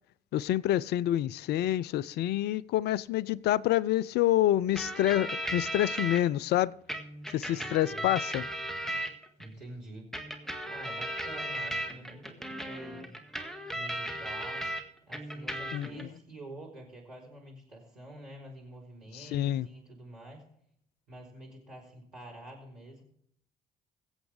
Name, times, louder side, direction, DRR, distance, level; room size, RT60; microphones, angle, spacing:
voice 1, 0.3-6.7 7.3-8.4 15.7-16.1 19.1-19.7, left 13 dB, 55° left, 0.5 m, -27 dB
sound 1, 4.8-6.2 6.9-9.5 10.1-14.8 15.1-16.0, equal, ahead, 1.8 m, -36 dB
voice 2, 7.5-8.1 9.1-10.1 10.6-13.2 13.7-14.7 15.1-20.4 21.1-23.0, right 1 dB, 90° right, 3.9 m, -47 dB
21.5 x 8.1 x 3.4 m
figure-of-eight pair, 50°, 20 cm